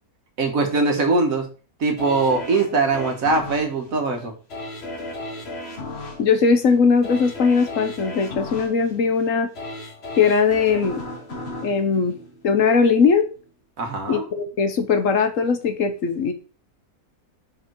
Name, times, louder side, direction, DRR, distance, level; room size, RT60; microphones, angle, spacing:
voice 1, 0.4-1.5 1.8-4.3 13.8-14.3, right 3 dB, 65° right, 4 dB, 1.8 m, -21 dB
sound 1, 2.0-12.9 13.4-13.5, left 2 dB, 45° left, 1.6 m, -36 dB
voice 2, 6.2-9.5 10.2-11.0 11.6-12.1 12.4-13.3 14.1-16.3, left 5 dB, 60° left, 8 dB, 1.3 m, -19 dB
5.9 x 5.0 x 4.6 m, 0.35 s
omnidirectional pair, 1.6 m